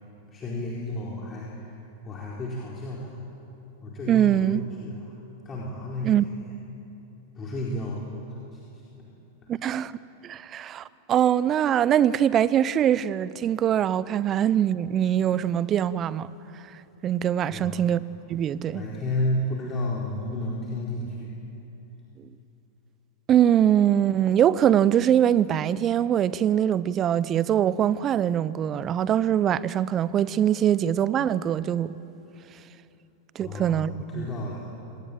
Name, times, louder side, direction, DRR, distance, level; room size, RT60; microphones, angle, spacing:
voice 1, 0.3-3.2 3.8-5.1 5.4-6.4 7.3-8.1 8.5-8.8 9.4-9.5 17.5-17.8 18.7-21.3 33.4-34.7, left 1 dB, 25° left, 4.6 m, -32 dB
voice 2, 4.1-4.6 6.0-6.2 9.5-9.9 10.2-16.3 17.0-18.0 18.3-18.8 23.3-32.0 33.3-34.3, right 10 dB, 30° right, 0.8 m, -23 dB
26.0 x 20.0 x 8.8 m
figure-of-eight pair, 95°, 0 cm